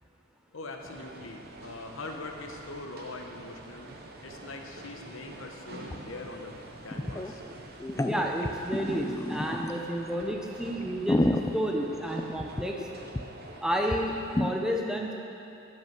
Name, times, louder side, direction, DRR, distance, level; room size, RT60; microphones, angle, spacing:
voice 1, 0.5-3.9 4.2-7.4, left 2 dB, 70° left, 2 dB, 1.1 m, -42 dB
sound 1, 0.8-14.5, right 2 dB, 50° right, 0.9 m, -47 dB
sound 2, 5.9-6.0 6.2-6.3 6.9-7.3 7.8-9.8 10.3-10.4 10.8-12.8 13.1-13.2 13.5-13.6 13.9-14.0 14.3-14.5, left 1 dB, 15° left, 0.3 m, -29 dB
voice 2, 8.1-12.9 13.6-15.1, equal, 5° right, 0 dB, 0.7 m, -31 dB
14.5 x 5.6 x 6.0 m, 2.9 s
head